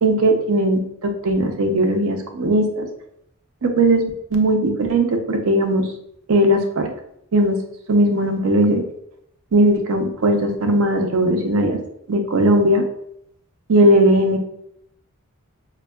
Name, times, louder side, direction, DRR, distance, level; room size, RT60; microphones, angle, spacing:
voice 1, 0.0-2.9 3.6-4.0 4.3-5.9 6.3-6.9 7.3-7.6 7.9-8.8 9.5-11.8 12.1-12.8 13.7-14.4, right 1 dB, 75° right, 4 dB, 0.5 m, -18 dB
4.2 x 2.3 x 2.3 m, 0.72 s
head